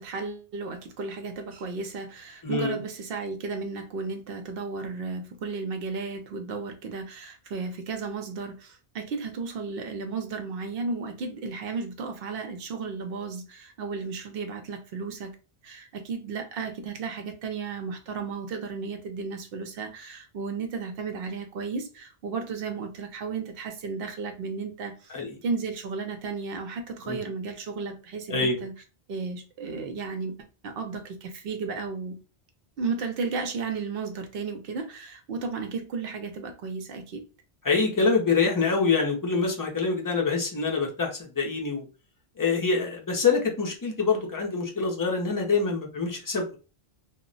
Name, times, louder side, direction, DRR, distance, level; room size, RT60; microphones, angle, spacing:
voice 1, 0.0-15.3 15.6-25.1 25.4-28.7 29.1-30.3 30.6-32.1 32.8-37.2, right 4 dB, 65° right, 0.8 m, -34 dB
voice 2, 2.4-2.8 25.1-25.4 27.1-27.2 28.3-28.6 37.6-41.8 42.4-46.6, left 4 dB, 30° left, 0.4 m, -25 dB
2.2 x 2.1 x 3.7 m
omnidirectional pair, 1.1 m